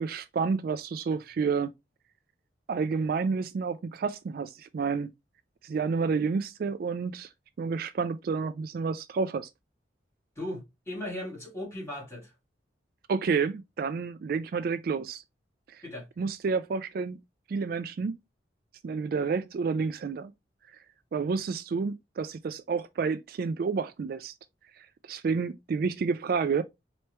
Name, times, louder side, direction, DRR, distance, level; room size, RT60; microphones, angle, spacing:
voice 1, 0.0-1.7 2.7-5.1 5.6-7.3 7.6-9.5 13.1-15.2 15.7-15.8 16.2-17.2 17.5-18.1 18.8-20.3 21.1-24.3 24.8-26.6, right 5 dB, 55° right, 0.3 m, -30 dB
voice 2, 10.4-12.3 15.8-16.1, left 1 dB, 15° left, 2.2 m, -37 dB
4.4 x 3.1 x 3.0 m
head